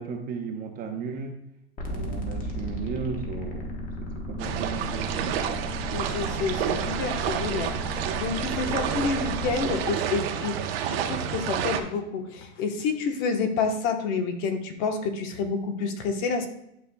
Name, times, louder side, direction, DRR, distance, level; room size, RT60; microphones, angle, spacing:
voice 1, 0.0-1.4 1.9-5.3, right 5 dB, 25° right, 4 dB, 0.8 m, -35 dB
sound 1, 1.8-9.8, left 1 dB, 25° left, 1.3 m, -35 dB
sound 2, 4.4-11.8, right 9 dB, 60° right, 0.9 m, -29 dB
voice 2, 5.9-10.6 10.8-16.5, left 5 dB, 45° left, 5 dB, 1.1 m, -29 dB
11.0 x 5.4 x 2.3 m, 0.78 s
supercardioid pair, 140°, 34 cm